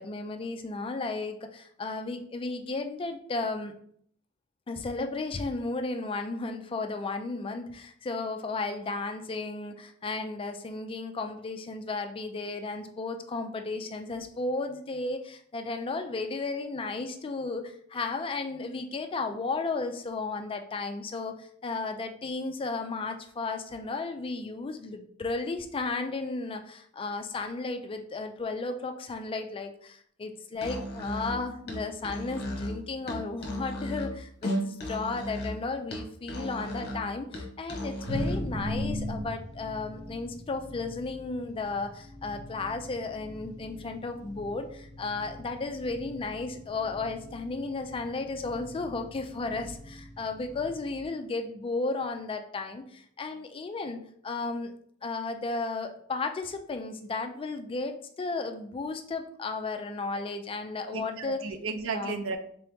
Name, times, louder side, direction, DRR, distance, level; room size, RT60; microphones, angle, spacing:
voice 1, 0.0-3.7 4.7-54.7 55.0-61.4 61.9-62.2, left 3 dB, 25° left, 6 dB, 0.3 m, -34 dB
Musical instrument, 30.5-38.5, equal, 50° left, 0.9 m, -36 dB
sound 1, 38.0-51.1, equal, 35° right, 1.1 m, -40 dB
voice 2, 60.8-62.4, right 4 dB, 65° right, 7 dB, 0.5 m, -34 dB
3.8 x 2.9 x 3.4 m, 0.64 s
head